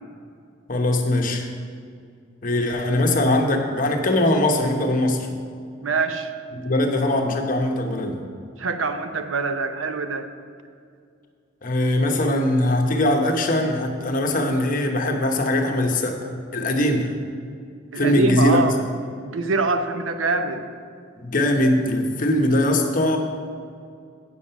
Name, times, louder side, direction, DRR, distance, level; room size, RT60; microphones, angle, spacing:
voice 1, 0.7-1.5 2.4-5.3 6.5-8.2 11.6-16.2 16.5-17.1 18.0-18.6 21.2-23.2, left 1 dB, 45° left, 3 dB, 0.9 m, -21 dB
voice 2, 5.8-6.3 8.6-10.3 17.9-18.8 19.2-20.7, right 3 dB, 85° right, 8 dB, 0.7 m, -24 dB
8.5 x 7.2 x 5.7 m, 2.3 s
head